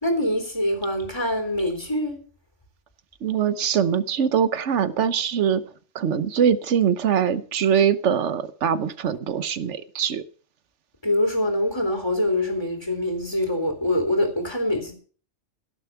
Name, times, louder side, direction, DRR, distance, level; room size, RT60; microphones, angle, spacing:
voice 1, 0.0-2.2 11.0-14.9, left 1 dB, 25° left, 3.0 m, -24 dB
voice 2, 3.2-5.6 5.9-10.2, right 8 dB, 90° right, 1.2 m, -22 dB
16.5 x 7.0 x 5.8 m
omnidirectional pair, 1.2 m